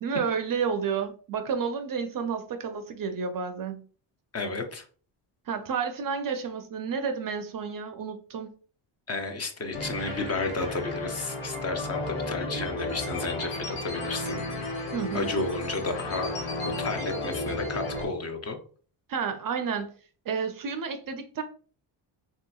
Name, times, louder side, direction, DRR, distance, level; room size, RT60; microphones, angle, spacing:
voice 1, 0.0-3.8 5.5-8.5 14.9-15.3 19.1-19.9 20.3-21.4, right 6 dB, 45° right, 0.5 m, -31 dB
voice 2, 4.3-4.8 9.1-14.4 15.1-16.3 16.8-18.6, left 3 dB, 30° left, 0.5 m, -32 dB
sound 1, 9.7-18.1, left 2 dB, 85° left, 1.4 m, -33 dB
3.3 x 2.8 x 2.3 m
cardioid pair, 95°, 48 cm